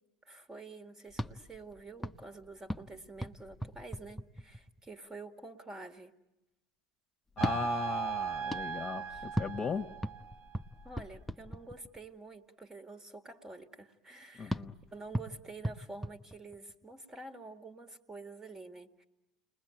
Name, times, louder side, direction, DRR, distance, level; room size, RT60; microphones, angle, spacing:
voice 1, 0.3-6.2 9.1-9.2 10.8-14.6 14.9-19.0, right 3 dB, 20° right, 7 dB, 2.1 m, -48 dB
sound 1, 1.1-4.9 7.3-12.2 14.5-16.9, equal, 5° left, 0.9 m, -40 dB
voice 2, 7.4-9.9 14.4-14.7, left 6 dB, 25° left, 4 dB, 1.5 m, -37 dB
sound 2, 7.4-10.6, right 8 dB, 50° right, 1.4 m, -38 dB
30.0 x 21.5 x 9.1 m, 0.98 s
hypercardioid pair, 85°, 3 cm